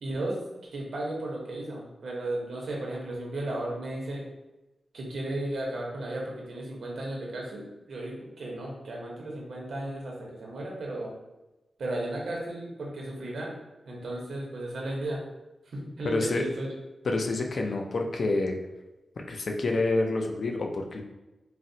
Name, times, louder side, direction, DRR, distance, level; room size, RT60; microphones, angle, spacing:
voice 1, 0.0-4.2 4.9-11.1 11.8-13.5 13.8-15.2 15.7-16.7, right 1 dB, 90° right, -2 dB, 0.8 m, -34 dB
voice 2, 16.0-16.4 17.0-18.6 19.3-21.0, left 2 dB, 60° left, 2 dB, 0.4 m, -28 dB
4.0 x 2.0 x 2.6 m, 1.0 s
wide cardioid pair, 115°, 0 cm